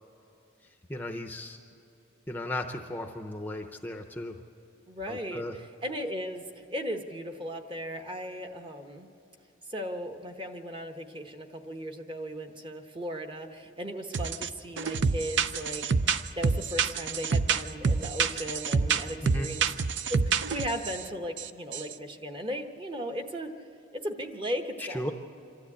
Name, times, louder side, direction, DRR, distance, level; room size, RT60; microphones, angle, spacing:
voice 1, 0.9-1.6 2.3-4.3 5.1-5.5 19.2-19.5 24.9-25.1, left 1 dB, 10° left, 5 dB, 0.6 m, -35 dB
voice 2, 4.9-9.1 9.7-15.9 16.4-19.7 20.1-23.5 23.9-25.1, equal, 25° right, 5 dB, 1.1 m, -36 dB
sound 1, 14.1-14.5 14.8-21.0 21.4-21.5 21.7-21.9, right 5 dB, 65° right, 0.6 m, -27 dB
26.0 x 13.0 x 8.5 m, 2.9 s
head